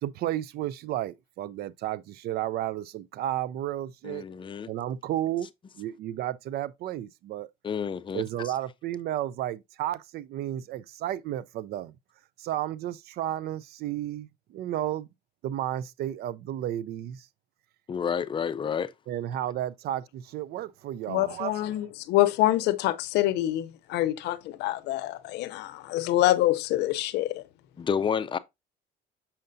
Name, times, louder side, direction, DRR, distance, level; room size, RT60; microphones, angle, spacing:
voice 1, 0.0-4.2 4.7-5.5 5.7-7.5 8.1-11.9 12.4-15.1 15.4-17.3 19.1-21.8, right 12 dB, 70° right, 0.5 m, -32 dB
voice 2, 4.0-4.7 7.6-8.2 17.9-18.9 27.8-28.4, left 7 dB, 30° left, 0.5 m, -29 dB
voice 3, 21.1-27.4, left 15 dB, 85° left, 0.6 m, -26 dB
6.6 x 5.7 x 2.6 m
cardioid pair, 110°, 17 cm